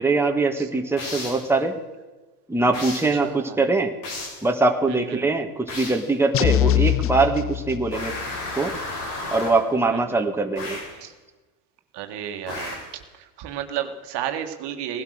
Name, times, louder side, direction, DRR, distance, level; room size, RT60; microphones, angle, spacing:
voice 1, 0.0-1.7 2.5-3.9 4.4-8.1 8.5-8.7 9.3-10.8, right 3 dB, 5° right, 3 dB, 1.8 m, -22 dB
sound 1, 1.0-1.5 2.7-3.2 4.0-4.5 5.7-6.1 7.9-9.7 10.6-11.0 12.5-13.0, left 2 dB, 85° left, 7.0 m, -33 dB
voice 2, 3.2-3.6 4.9-5.3 9.9-10.2 10.9-11.1 11.9-12.8 13.1-15.0, right 10 dB, 60° right, 6 dB, 1.8 m, -32 dB
sound 2, 6.3-8.2, left 11 dB, 30° left, 0.5 m, -22 dB
18.5 x 12.0 x 6.6 m, 1.2 s
supercardioid pair, 90°, 46 cm